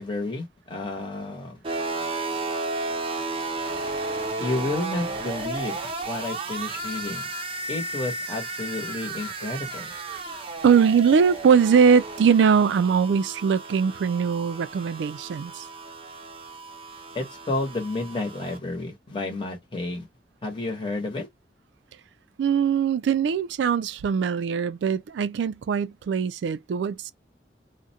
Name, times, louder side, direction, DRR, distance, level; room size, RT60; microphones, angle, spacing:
voice 1, 0.0-1.6 4.4-7.3 7.7-9.9 17.1-20.1 20.4-21.3, left 2 dB, 30° left, 0.9 m, -31 dB
sound 1, 1.6-18.6, right 2 dB, 30° right, 0.5 m, -33 dB
voice 2, 10.6-15.7 22.4-27.1, right 6 dB, 85° right, 0.3 m, -21 dB
2.4 x 2.1 x 2.6 m
head